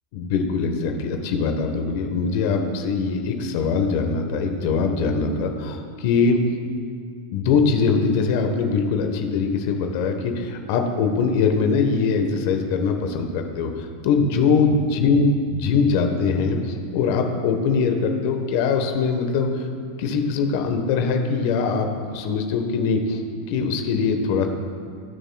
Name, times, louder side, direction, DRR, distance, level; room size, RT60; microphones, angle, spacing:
voice 1, 0.1-6.4 7.3-19.7 20.0-23.2 23.5-24.5, left 5 dB, 60° left, 5 dB, 1.1 m, -22 dB
19.0 x 7.0 x 2.3 m, 2.2 s
hypercardioid pair, 120°, 0 cm